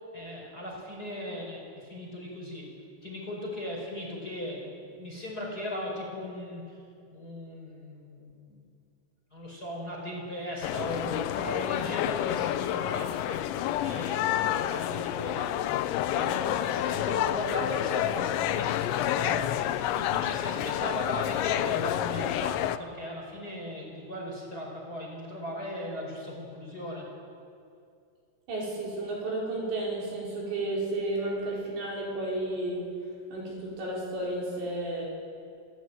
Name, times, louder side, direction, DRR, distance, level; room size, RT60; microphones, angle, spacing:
voice 1, 0.1-2.7 3.0-6.6 7.1-8.6 9.3-13.4 13.8-15.5 16.1-19.5 19.9-27.1, left 1 dB, 20° left, -1 dB, 4.8 m, -37 dB
sound 1, 10.6-22.8, left 12 dB, 80° left, 2.8 m, -29 dB
voice 2, 28.5-32.8 33.3-35.1, right 2 dB, 60° right, -4 dB, 7.2 m, -32 dB
28.5 x 17.0 x 9.2 m, 2.4 s
omnidirectional pair, 5.9 m